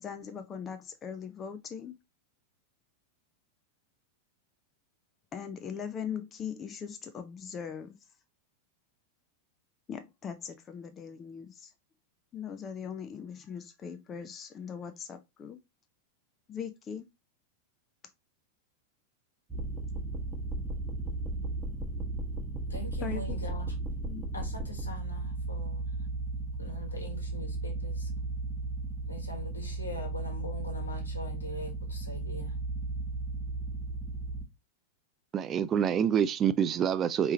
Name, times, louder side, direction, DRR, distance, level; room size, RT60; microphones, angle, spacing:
voice 1, 0.0-2.0 5.3-8.0 9.9-11.7 12.3-15.6 16.5-17.1 23.0-23.4 24.0-24.3, left 7 dB, 25° left, 0.5 m, -40 dB
sound 1, 19.5-34.4, right 2 dB, 10° right, 1.1 m, -35 dB
voice 2, 22.7-23.7 24.3-25.9 26.6-28.1 29.0-32.5, left 1 dB, 80° left, 1.4 m, -42 dB
voice 3, 35.3-37.3, right 8 dB, 25° right, 0.3 m, -26 dB
4.6 x 3.1 x 2.9 m
figure-of-eight pair, 90°, 0 cm